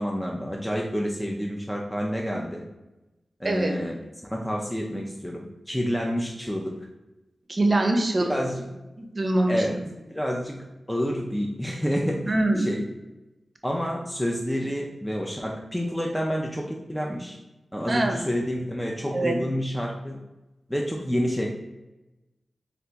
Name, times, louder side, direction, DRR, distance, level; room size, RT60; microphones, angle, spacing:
voice 1, 0.0-2.6 3.4-6.8 8.2-8.7 9.5-9.8 10.1-12.9 13.6-17.4 17.7-20.2 20.7-21.5, equal, 5° left, -1 dB, 0.4 m, -29 dB
voice 2, 7.5-8.4 9.0-9.9 12.3-12.7 17.9-18.3 19.1-19.4, right 2 dB, 45° right, 3 dB, 0.6 m, -24 dB
2.8 x 2.4 x 3.4 m, 1.0 s
cardioid pair, 45°, 0 cm